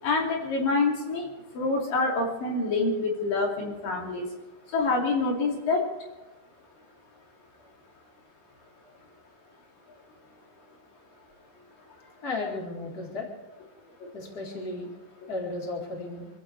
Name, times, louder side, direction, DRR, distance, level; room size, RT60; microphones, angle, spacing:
voice 1, 0.0-1.3 1.5-4.3 4.7-5.9 14.0-14.1, left 3 dB, 70° left, -1 dB, 4.4 m, -26 dB
voice 2, 12.2-13.3 14.1-14.9 15.3-16.3, left 2 dB, 25° left, -2 dB, 4.3 m, -34 dB
26.5 x 16.0 x 3.4 m, 1.2 s
omnidirectional pair, 4.1 m